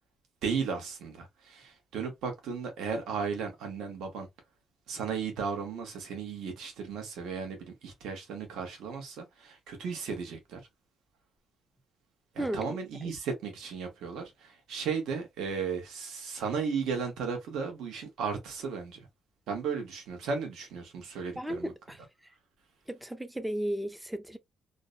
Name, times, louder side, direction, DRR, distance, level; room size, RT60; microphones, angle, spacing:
voice 1, 0.4-4.3 4.9-10.6 12.3-19.1 19.5-21.7, right 5 dB, 80° right, 0.8 m, -35 dB
voice 2, 12.4-13.1 21.4-22.3 22.9-24.4, right 1 dB, 5° right, 0.4 m, -35 dB
2.5 x 2.1 x 2.3 m
cardioid pair, 90°, 0 cm